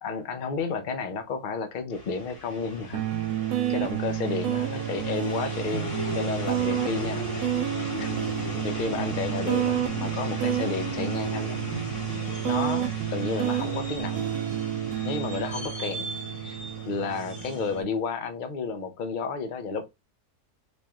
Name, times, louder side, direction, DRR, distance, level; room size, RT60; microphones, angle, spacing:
voice 1, 0.0-3.0 3.7-7.3 8.0-11.6 12.4-14.3 15.0-16.1 16.4-16.6 16.9-19.9, left 5 dB, 70° left, 0.4 m, -32 dB
sound 1, 1.9-17.8, left 2 dB, 50° left, 2.5 m, -37 dB
sound 2, 2.9-18.0, right 12 dB, 85° right, 1.2 m, -30 dB
4.2 x 3.1 x 2.3 m
omnidirectional pair, 1.7 m